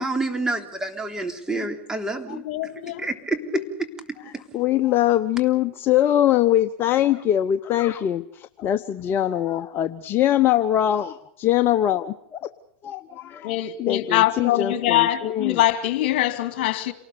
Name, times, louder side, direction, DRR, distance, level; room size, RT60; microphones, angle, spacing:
voice 1, 0.0-2.4 3.0-3.4, right 2 dB, 10° right, 3.6 m, -28 dB
voice 2, 2.3-3.1 3.5-3.7 13.4-16.9, left 14 dB, 60° left, 2.2 m, -23 dB
voice 3, 4.2-12.5 12.8-15.6, left 12 dB, 35° left, 1.0 m, -22 dB
28.0 x 19.0 x 7.0 m
hypercardioid pair, 95°, 6 cm